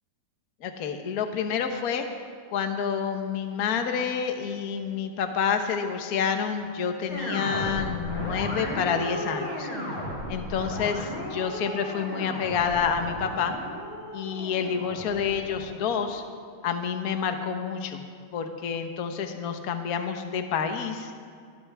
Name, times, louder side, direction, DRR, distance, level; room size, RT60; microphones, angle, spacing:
voice 1, 0.6-2.1 2.5-9.7 10.3-13.6 14.1-16.2 16.6-18.0 18.3-21.1, left 7 dB, 65° left, 6 dB, 0.9 m, -28 dB
sound 1, 7.1-16.4, equal, 25° left, 5.1 m, -35 dB
23.0 x 16.0 x 3.6 m, 2.2 s
omnidirectional pair, 3.4 m